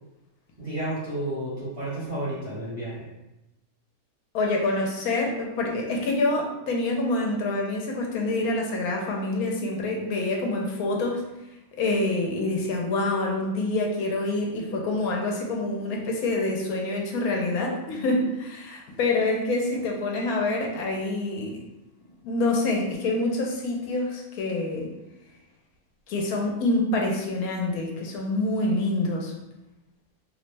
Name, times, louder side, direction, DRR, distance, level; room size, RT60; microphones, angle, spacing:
voice 1, 0.6-3.1, right 1 dB, 25° right, -10 dB, 1.0 m, -31 dB
voice 2, 4.3-11.2 11.8-21.6 22.2-24.9 26.1-29.3, left 2 dB, 85° left, 0 dB, 1.1 m, -26 dB
3.1 x 2.0 x 3.2 m, 0.95 s
omnidirectional pair, 1.5 m